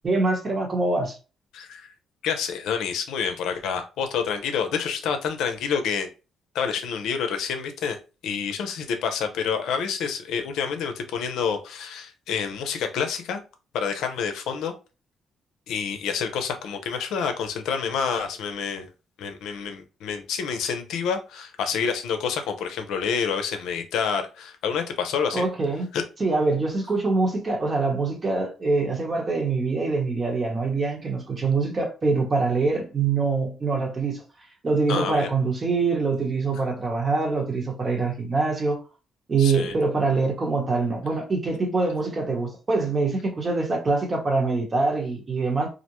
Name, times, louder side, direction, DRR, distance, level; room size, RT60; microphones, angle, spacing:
voice 1, 0.0-1.1 25.3-25.8 26.2-34.2 34.6-38.8 39.3-45.7, right 3 dB, 35° right, 1.0 m, -24 dB
voice 2, 1.5-1.9 2.2-6.1 6.5-8.0 8.2-13.4 13.7-14.7 15.7-18.9 19.2-25.5 25.9-26.0 34.9-35.3 39.4-39.7, left 6 dB, 85° left, 0.5 m, -28 dB
2.5 x 2.1 x 2.9 m
cardioid pair, 90°, 0 cm